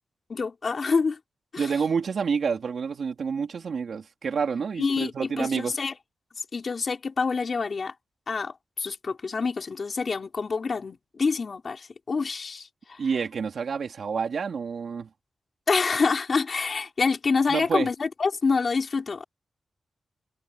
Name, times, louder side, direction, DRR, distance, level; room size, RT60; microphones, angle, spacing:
voice 1, 0.3-1.2 1.5-1.7 4.8-5.9 6.4-7.9 8.3-13.0 15.7-19.2, left 4 dB, 40° left, 5.3 m, -27 dB
voice 2, 1.6-5.7 13.0-15.1 17.5-17.9, right 6 dB, 60° right, 3.2 m, -28 dB
wide cardioid pair, 165°, 0 cm